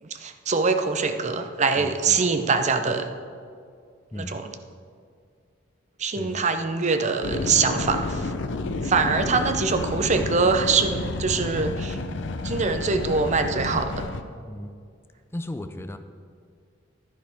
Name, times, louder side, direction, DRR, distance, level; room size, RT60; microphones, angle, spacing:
voice 1, 0.0-3.1 4.2-4.5 6.0-8.3 8.8-12.0 12.4-14.1, right 4 dB, 40° right, 8 dB, 0.6 m, -24 dB
voice 2, 1.8-2.2 4.1-4.4 6.2-6.4 9.1-9.5 14.4-14.7 15.3-16.0, left 1 dB, 15° left, 8 dB, 0.5 m, -35 dB
sound 1, 7.2-14.2, left 3 dB, 65° left, 0.6 m, -30 dB
11.5 x 10.5 x 3.5 m, 2.2 s
head